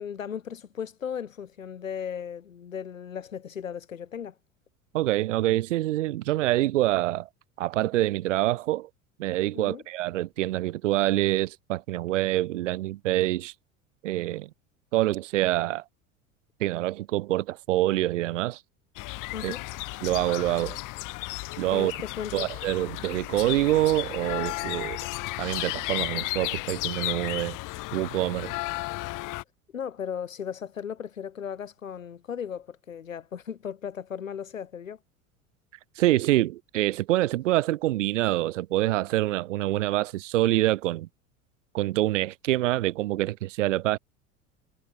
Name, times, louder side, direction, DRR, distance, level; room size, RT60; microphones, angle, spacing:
voice 1, 0.0-4.4 9.5-9.8 19.3-19.6 21.7-22.5 29.7-35.0, left 8 dB, 80° left, 4.3 m, -36 dB
voice 2, 4.9-7.3 7.6-8.9 9.2-13.5 14.0-14.5 14.9-15.8 16.6-18.6 19.4-19.5 20.0-20.8 21.6-21.9 22.3-25.0 25.4-27.6 27.9-28.5 36.0-41.1 41.7-44.0, right 15 dB, 65° right, 1.1 m, -26 dB
sound 1, 19.0-29.4, left 22 dB, 50° left, 5.3 m, -34 dB
figure-of-eight pair, 75°, 39 cm